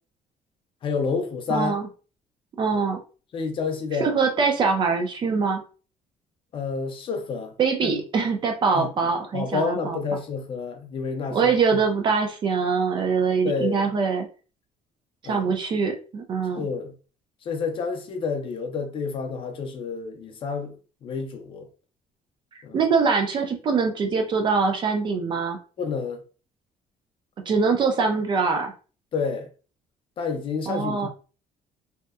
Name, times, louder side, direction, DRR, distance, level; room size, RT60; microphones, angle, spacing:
voice 1, 0.8-1.7 2.7-2.8 3.3-4.1 6.5-7.5 7.8-7.9 8.7-8.9 9.3-11.8 13.4-13.9 15.2-15.5 16.6-16.9 17.5-20.7 21.0-21.7 22.6-22.8 25.8-26.2 29.1-29.5 30.2-31.1, left 5 dB, 35° left, 0.4 m, -29 dB
voice 2, 1.5-1.9 2.6-3.0 4.0-5.6 7.6-10.0 11.3-14.3 15.2-16.7 22.7-25.6 27.5-28.7 30.7-31.1, right 5 dB, 35° right, 0.4 m, -23 dB
2.7 x 2.1 x 2.3 m
cardioid pair, 170°, 14 cm